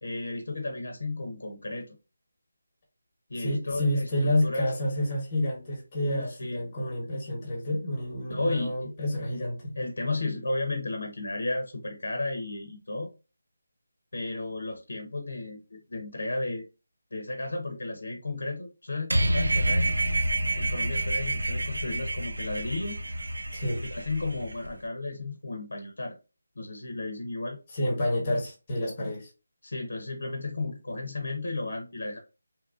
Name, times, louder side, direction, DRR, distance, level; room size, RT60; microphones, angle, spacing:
voice 1, 0.0-2.0 3.3-4.7 6.0-6.7 8.2-8.9 9.3-9.4 9.8-13.1 14.1-16.6 17.1-20.0 20.5-23.0 23.9-26.2 26.6-27.6 29.6-32.2, left 2 dB, 75° left, 0.6 m, -33 dB
voice 2, 3.4-9.7 23.5-23.8 27.7-29.3, left 1 dB, 20° left, 1.0 m, -29 dB
sound 1, 19.1-24.7, right 1 dB, 85° right, 0.4 m, -28 dB
2.8 x 2.4 x 2.4 m
figure-of-eight pair, 170°, 0 cm